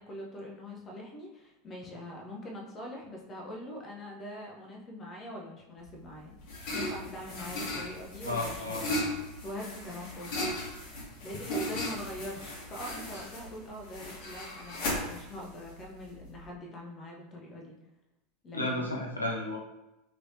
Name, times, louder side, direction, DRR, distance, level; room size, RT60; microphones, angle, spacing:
voice 1, 0.0-6.3 6.7-9.1 9.4-10.5 11.2-17.8 18.4-18.9, left 1 dB, 30° left, -1 dB, 0.9 m, -43 dB
sound 1, 5.8-16.4, left 1 dB, 55° left, 1.3 m, -37 dB
voice 2, 8.2-8.8 18.5-19.6, left 1 dB, 85° left, -1 dB, 0.6 m, -32 dB
3.2 x 3.0 x 2.8 m, 0.95 s
figure-of-eight pair, 80°, 0 cm